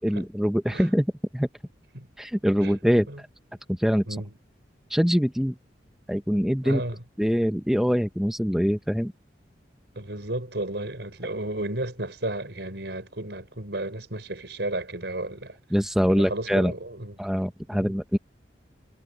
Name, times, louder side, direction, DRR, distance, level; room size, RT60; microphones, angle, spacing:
voice 1, 0.0-1.5 2.2-3.1 3.7-4.0 4.9-5.5 6.1-6.8 7.2-9.1 15.7-16.7 17.2-18.2, equal, ahead, 0.8 m, -23 dB
voice 2, 6.6-7.0 9.9-15.6 16.0-17.2 17.7-17.9, right 1 dB, 70° right, 4.7 m, -33 dB
head